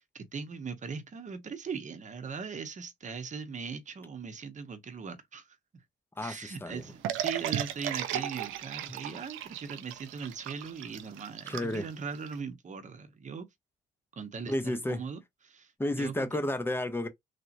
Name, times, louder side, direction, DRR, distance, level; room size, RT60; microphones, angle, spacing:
voice 1, 0.0-5.6 6.2-13.5 14.2-16.3, right 5 dB, 40° right, 0.9 m, -40 dB
voice 2, 6.2-6.8 11.5-11.9 14.5-15.1 15.8-17.1, left 1 dB, 10° left, 0.8 m, -32 dB
sound 1, 7.0-12.4, right 11 dB, 90° right, 0.5 m, -35 dB
3.3 x 2.8 x 2.5 m
cardioid pair, 90°, 20 cm